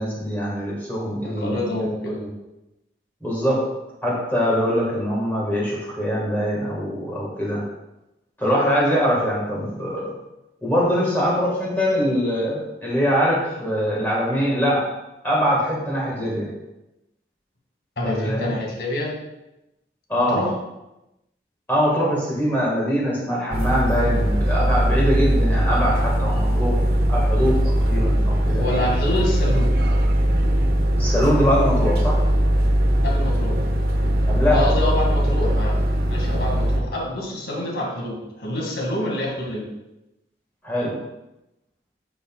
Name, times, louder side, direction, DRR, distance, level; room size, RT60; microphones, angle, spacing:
voice 1, 0.0-1.6 2.1-2.3 3.2-3.6 4.0-7.6 8.4-10.1 10.6-14.9 15.2-16.5 18.0-18.5 20.1-20.5 21.7-26.8 27.1-28.6 31.0-32.2 34.3-34.7 40.6-41.0, equal, 10° left, -6 dB, 1.6 m, -23 dB
voice 2, 1.4-2.2 18.0-19.1 20.3-20.5 28.5-29.7 33.0-33.5 34.5-35.8 36.1-39.7, left 1 dB, 80° left, -2 dB, 2.0 m, -27 dB
sound 1, 23.5-36.8, equal, 60° right, 0.8 m, -20 dB
9.7 x 6.0 x 2.3 m, 0.94 s
head